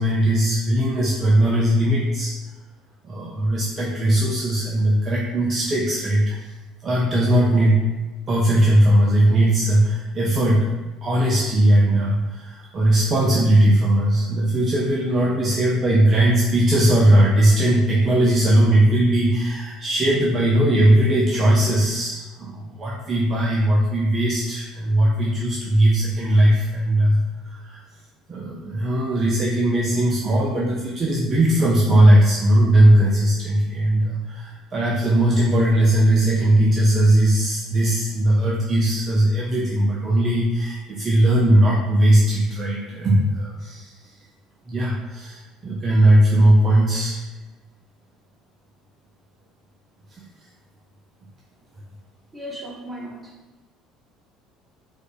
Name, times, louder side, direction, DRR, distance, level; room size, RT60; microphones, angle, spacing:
voice 1, 0.0-2.3 3.0-6.5 6.8-7.8 8.3-10.7 11.0-27.8 28.3-44.1 44.7-47.2, right 1 dB, 35° right, -3 dB, 0.5 m, -19 dB
voice 2, 52.3-53.3, equal, 20° right, -2 dB, 0.8 m, -36 dB
4.4 x 2.5 x 2.2 m, 1.1 s
figure-of-eight pair, 60°, 0 cm